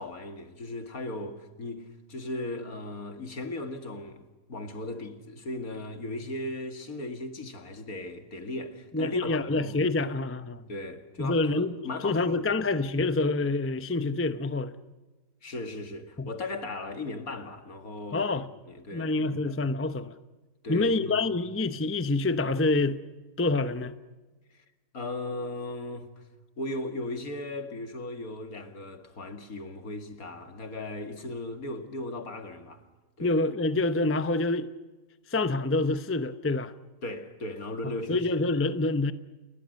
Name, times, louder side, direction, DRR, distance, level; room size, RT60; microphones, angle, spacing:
voice 1, 0.0-4.2 4.5-9.9 10.7-12.5 15.4-19.6 20.6-21.3 24.5-24.6 24.9-26.2 26.6-32.9 33.2-33.3 37.0-38.3, left 2 dB, 55° left, 2.5 m, -37 dB
voice 2, 8.9-10.6 11.2-11.7 12.0-14.7 16.2-16.3 18.1-18.4 18.9-20.1 20.7-23.0 23.4-23.9 33.2-34.7 35.3-36.7 38.1-39.1, left 2 dB, 20° left, 0.3 m, -27 dB
29.5 x 21.5 x 6.5 m
omnidirectional pair, 1.9 m